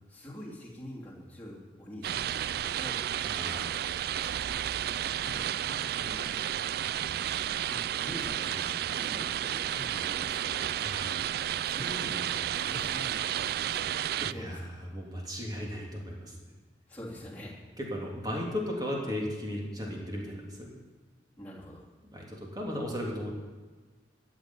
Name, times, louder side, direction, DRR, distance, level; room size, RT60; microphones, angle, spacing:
voice 1, 0.1-3.0 4.6-4.7 5.2-6.4 6.8-7.2 7.7-10.7 11.6-14.6 16.9-17.6 21.4-21.9, equal, 10° left, -6 dB, 2.8 m, -45 dB
sound 1, 2.0-14.3, right 10 dB, 60° right, 0.3 m, -32 dB
voice 2, 3.2-3.8 4.1-4.4 10.8-11.2 14.2-14.6 14.9-16.3 17.8-20.7 22.1-23.3, equal, 25° right, -2 dB, 3.1 m, -36 dB
14.0 x 6.8 x 9.9 m, 1.4 s
head